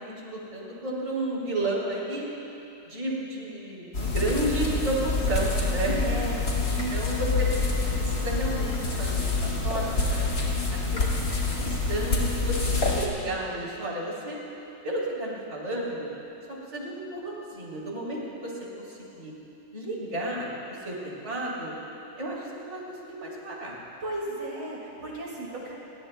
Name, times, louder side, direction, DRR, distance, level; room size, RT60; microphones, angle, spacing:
voice 1, 0.0-2.3 2.9-6.0 6.7-7.5 8.0-10.3 10.9-11.1 11.5-14.4 14.8-16.1 16.5-19.3 19.7-21.7 22.2-23.7, right 1 dB, 35° right, -4 dB, 3.7 m, -32 dB
sound 1, 3.9-13.1, left 3 dB, 50° left, 2.6 m, -27 dB
voice 2, 6.0-6.9 24.0-25.7, right 2 dB, 75° right, -4 dB, 3.0 m, -35 dB
29.0 x 21.5 x 2.3 m, 2.9 s
omnidirectional pair, 2.0 m